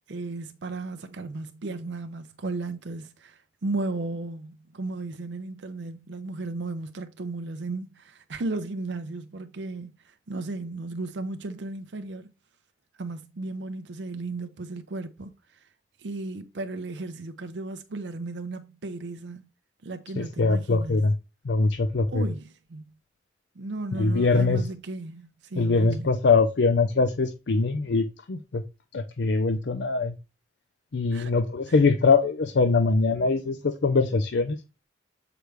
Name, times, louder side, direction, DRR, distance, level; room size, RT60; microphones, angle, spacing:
voice 1, 0.0-12.3 13.0-15.3 16.0-19.5 19.8-21.0 22.1-22.8 23.6-26.1 31.1-31.3, right 3 dB, 75° right, 0.6 m, -35 dB
voice 2, 20.2-21.1 21.4-22.2 23.9-24.7 25.6-28.6 28.9-30.1 30.9-34.6, left 3 dB, 70° left, 0.5 m, -23 dB
7.8 x 4.9 x 3.3 m
head